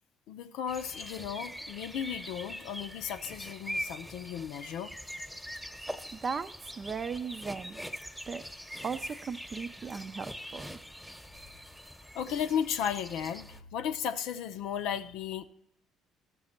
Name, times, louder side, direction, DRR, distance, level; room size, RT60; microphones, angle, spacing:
voice 1, 0.3-4.9 12.1-15.4, left 8 dB, 75° left, 8 dB, 0.6 m, -35 dB
sound 1, 0.7-13.6, equal, ahead, 1.1 m, -43 dB
voice 2, 6.1-7.8 8.3-8.4 8.8-10.8, right 5 dB, 40° right, 12 dB, 0.6 m, -37 dB
13.5 x 6.8 x 4.3 m, 0.79 s
hypercardioid pair, 60°, 0 cm